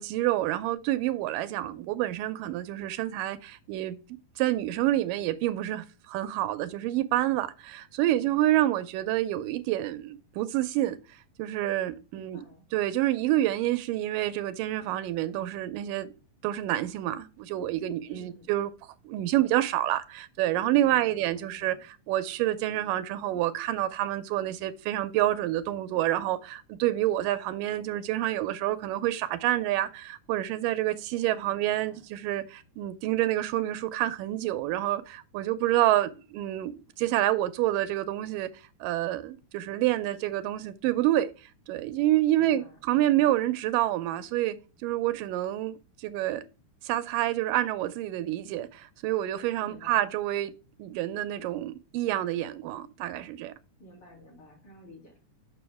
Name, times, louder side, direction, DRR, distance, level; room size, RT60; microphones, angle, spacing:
voice 1, 0.0-4.0 4.4-12.4 12.7-16.1 16.4-44.6 44.8-46.4 46.8-53.5, right 14 dB, 85° right, 2.2 m, -28 dB
voice 2, 12.1-12.7 18.1-18.5 20.8-21.8 31.3-32.1 42.3-43.3 49.6-50.0 53.8-55.2, equal, 40° left, 3.3 m, -52 dB
7.0 x 6.2 x 3.4 m
omnidirectional pair, 3.9 m